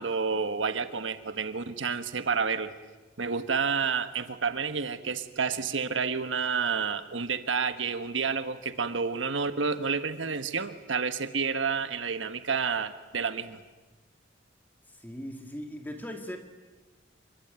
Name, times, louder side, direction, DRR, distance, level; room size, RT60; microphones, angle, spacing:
voice 1, 0.0-2.7 3.2-13.6, right 5 dB, 80° right, 10 dB, 1.4 m, -30 dB
voice 2, 14.9-16.4, equal, 10° left, 5 dB, 2.1 m, -39 dB
27.0 x 23.5 x 9.0 m, 1.2 s
head